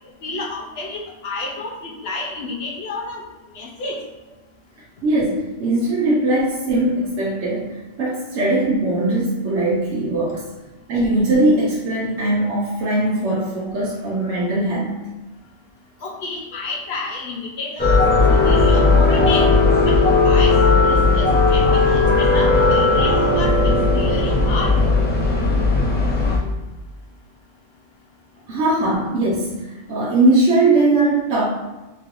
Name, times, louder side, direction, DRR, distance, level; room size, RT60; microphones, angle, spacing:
voice 1, 0.2-3.2 3.5-4.0 16.0-19.5 19.9-20.0 20.2-23.6 23.9-24.8, left 3 dB, 60° left, -2 dB, 0.8 m, -30 dB
voice 2, 5.0-10.4 10.9-15.0 28.5-31.4, right 2 dB, 70° right, -6 dB, 1.0 m, -20 dB
sound 1, 17.8-26.4, left 3 dB, 15° left, 0.4 m, -16 dB
3.9 x 3.0 x 2.5 m, 1.1 s
omnidirectional pair, 1.3 m